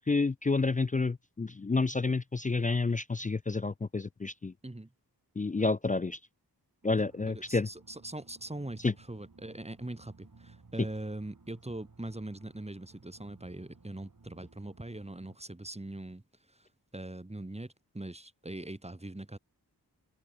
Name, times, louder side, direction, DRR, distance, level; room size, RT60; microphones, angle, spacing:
voice 1, 0.0-4.5 5.4-6.2 6.8-7.7 8.8-8.9, left 3 dB, 20° left, 0.4 m, -29 dB
sound 1, 6.8-15.4, right 4 dB, 50° right, 4.7 m, -58 dB
voice 2, 7.3-16.2 16.5-16.7 16.9-19.4, right 1 dB, 15° right, 1.7 m, -42 dB
wide cardioid pair, 55°, 41 cm